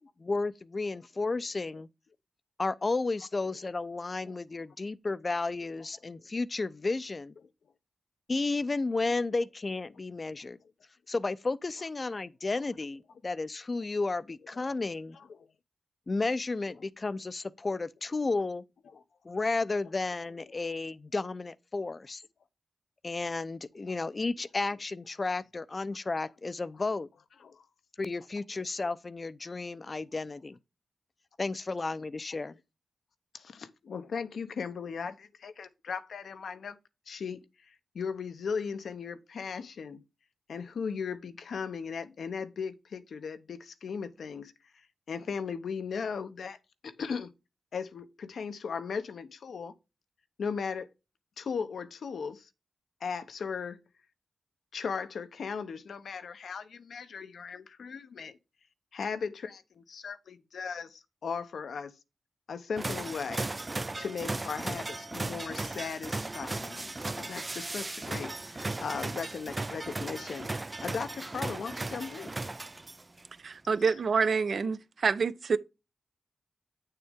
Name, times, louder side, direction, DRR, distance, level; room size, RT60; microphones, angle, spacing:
voice 1, 0.2-1.9 2.6-7.3 8.3-10.6 11.1-15.2 16.1-18.6 19.2-22.2 23.0-27.1 28.0-30.6 31.4-32.6, left 3 dB, 40° left, 0.6 m, -32 dB
voice 2, 33.3-36.8 37.1-40.0 40.5-46.6 46.8-47.3 47.7-49.8 50.4-50.9 51.4-52.5 53.0-53.8 54.7-58.4 58.9-61.9 62.5-63.5 64.0-72.3, left 6 dB, 85° left, 0.9 m, -37 dB
sound 1, 62.8-73.2, right 2 dB, 30° right, 0.3 m, -36 dB
voice 3, 73.4-75.6, right 5 dB, 65° right, 0.8 m, -27 dB
8.5 x 6.7 x 3.6 m
cardioid pair, 65°, 0 cm